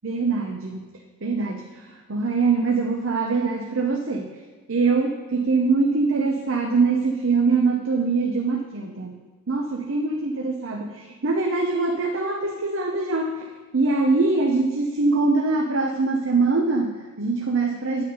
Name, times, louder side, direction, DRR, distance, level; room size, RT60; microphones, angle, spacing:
voice 1, 0.0-0.9 1.2-1.7 2.1-4.3 4.7-9.2 9.5-13.5 13.7-18.0, right 3 dB, 60° right, 2 dB, 0.8 m, -23 dB
9.1 x 8.6 x 5.5 m, 1.3 s
head